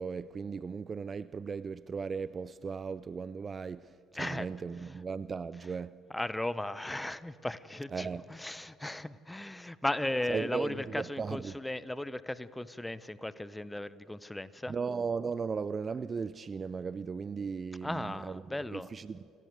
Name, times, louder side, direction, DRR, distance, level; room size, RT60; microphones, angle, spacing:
voice 1, 0.0-6.0 7.9-8.2 10.3-11.5 14.7-19.2, right 5 dB, 30° right, 0.4 m, -37 dB
voice 2, 4.1-4.5 4.8-5.0 6.1-14.8 17.8-18.9, left 1 dB, 10° left, 0.9 m, -36 dB
28.0 x 18.5 x 8.0 m
figure-of-eight pair, 55°, 0 cm